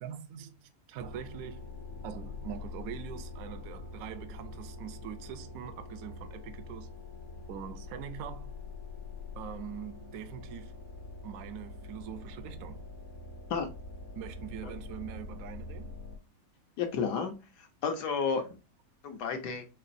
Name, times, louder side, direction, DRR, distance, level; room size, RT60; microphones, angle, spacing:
voice 1, 0.0-1.7 2.0-6.9 7.5-8.6 9.3-10.8 11.2-12.9 14.2-15.9, right 9 dB, 70° right, 0.9 m, -43 dB
sound 1, 1.0-16.2, left 3 dB, 55° left, 1.4 m, -44 dB
voice 2, 16.8-18.5 19.0-19.6, left 5 dB, 70° left, 1.3 m, -32 dB
5.8 x 3.0 x 2.5 m
omnidirectional pair, 1.9 m